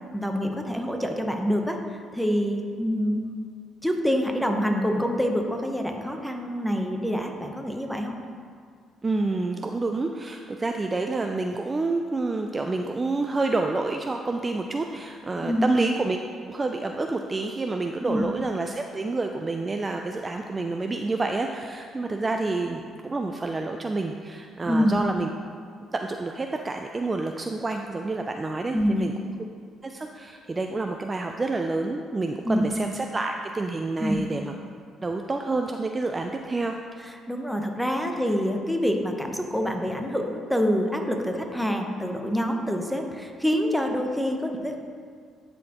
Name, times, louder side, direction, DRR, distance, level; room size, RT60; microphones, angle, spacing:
voice 1, 0.1-3.2 3.8-8.1 15.4-15.6 18.0-18.3 24.7-25.0 28.7-29.1 32.4-32.7 34.0-34.2 37.0-44.8, equal, ahead, 3 dB, 0.8 m, -26 dB
voice 2, 9.0-16.2 16.5-25.3 25.9-29.1 29.8-34.5 35.0-36.7, right 3 dB, 25° right, 4 dB, 0.3 m, -28 dB
10.5 x 4.2 x 2.9 m, 2.2 s
supercardioid pair, 75°, 0 cm